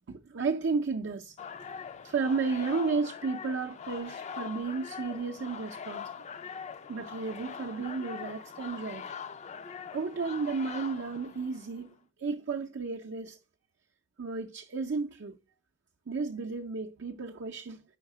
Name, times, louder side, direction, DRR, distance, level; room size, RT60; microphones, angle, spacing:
voice 1, 0.1-1.4 1.6-6.1 6.9-9.0 9.9-11.9 12.2-13.4 14.2-15.4 16.1-17.8, right 4 dB, 65° right, 0.5 m, -33 dB
sound 1, 1.4-11.8, left 6 dB, 35° left, 0.4 m, -42 dB
5.2 x 4.8 x 4.6 m
head